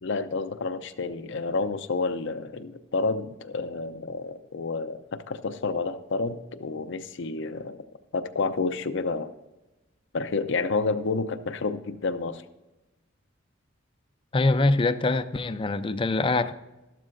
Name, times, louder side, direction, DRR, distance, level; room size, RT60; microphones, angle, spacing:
voice 1, 0.0-7.9 8.1-9.3 10.1-12.4, left 3 dB, 65° left, 0.6 m, -29 dB
voice 2, 14.3-16.5, left 2 dB, 25° left, 0.4 m, -24 dB
13.0 x 12.0 x 2.6 m
head